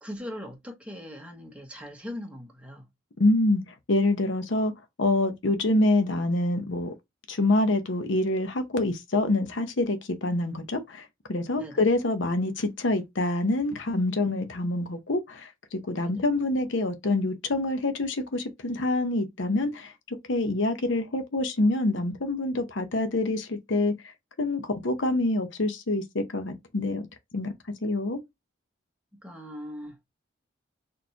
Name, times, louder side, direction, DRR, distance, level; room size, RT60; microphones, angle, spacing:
voice 1, 0.0-2.9 11.6-11.8 16.0-16.2 29.2-30.0, left 1 dB, 5° right, 1.1 m, -40 dB
voice 2, 3.2-4.7 5.0-6.9 7.3-23.9 24.4-27.1 27.3-27.5 27.8-28.2, left 2 dB, 70° left, 0.7 m, -26 dB
4.1 x 3.2 x 2.8 m
head